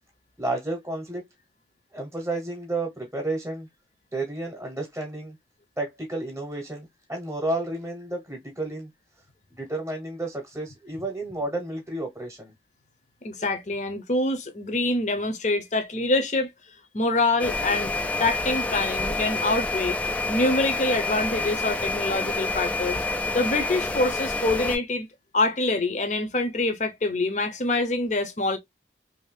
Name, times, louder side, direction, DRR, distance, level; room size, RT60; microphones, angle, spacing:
voice 1, 0.4-1.2 1.9-3.7 4.1-5.4 5.8-8.9 9.6-12.5, right 2 dB, 10° right, 1.0 m, -31 dB
voice 2, 13.2-16.5 16.9-17.9 18.2-20.0 20.3-23.0 23.3-25.1 25.3-28.6, left 2 dB, 40° left, 0.7 m, -25 dB
sound 1, 17.4-24.8, left 3 dB, 10° left, 0.3 m, -28 dB
3.0 x 2.7 x 3.3 m
head